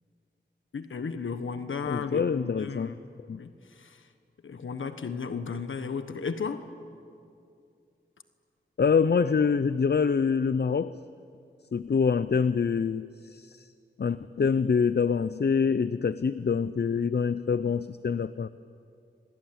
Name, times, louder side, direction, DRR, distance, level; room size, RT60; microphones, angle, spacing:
voice 1, 0.7-3.0 3.3-4.1 4.4-6.7, left 5 dB, 80° left, 9 dB, 1.3 m, -34 dB
voice 2, 1.9-2.9 3.3-3.4 8.8-10.9 11.7-13.7 14.0-18.5, left 5 dB, 55° left, 15 dB, 0.7 m, -25 dB
27.5 x 22.5 x 9.4 m, 2.4 s
cardioid pair, 50°, 20 cm